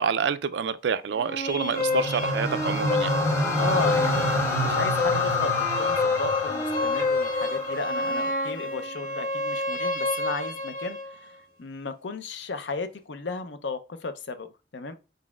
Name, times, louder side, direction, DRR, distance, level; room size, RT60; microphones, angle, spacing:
voice 1, 0.0-3.2, right 6 dB, 80° right, 0.4 m, -27 dB
sound 1, 1.1-11.1, left 2 dB, 50° left, 1.6 m, -28 dB
sound 2, 1.7-8.0, left 2 dB, 15° left, 0.9 m, -28 dB
voice 2, 3.6-11.3 11.6-14.9, left 3 dB, 85° left, 0.6 m, -34 dB
4.5 x 4.1 x 2.3 m
head